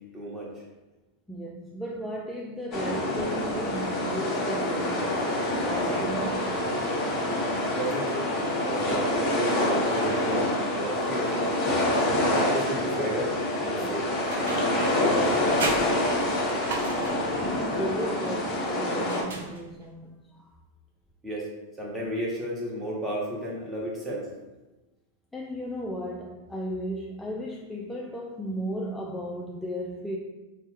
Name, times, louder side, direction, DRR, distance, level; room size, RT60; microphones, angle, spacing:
voice 1, 0.1-0.5 7.7-8.3 8.6-10.5 10.7-11.3 12.4-13.2 13.6-14.0 14.7-16.2 21.2-21.5 21.8-24.3, right 1 dB, 15° right, 1.0 m, -33 dB
voice 2, 1.3-5.2 5.6-7.6 13.7-14.0 17.0-20.5 25.3-30.2, equal, 5° left, 0.3 m, -35 dB
sound 1, 2.7-19.2, left 1 dB, 35° left, 1.0 m, -26 dB
sound 2, 14.3-14.9 15.2-17.3 19.0-20.0, right 3 dB, 80° right, 0.5 m, -35 dB
3.1 x 2.1 x 3.1 m
hypercardioid pair, 115°, 0 cm